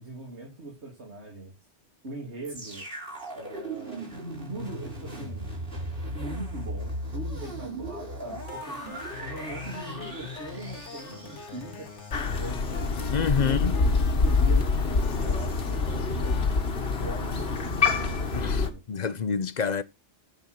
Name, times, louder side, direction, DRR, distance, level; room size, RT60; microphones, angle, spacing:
voice 1, 0.0-1.6 2.0-2.9 3.3-4.0 4.5-5.5 6.1-8.8 9.2-12.9 13.4-16.4 16.8-18.8, right 2 dB, 70° right, 3.0 m, -41 dB
sound 1, 2.4-12.5 13.1-13.2, right 1 dB, 50° right, 3.7 m, -37 dB
sound 2, 8.5-16.5, left 5 dB, 80° left, 1.6 m, -43 dB
Crow, 12.1-18.7, left 4 dB, 60° left, 1.6 m, -25 dB
voice 2, 13.1-13.7 18.3-19.8, left 6 dB, 45° left, 0.7 m, -28 dB
10.5 x 4.4 x 6.0 m
omnidirectional pair, 1.2 m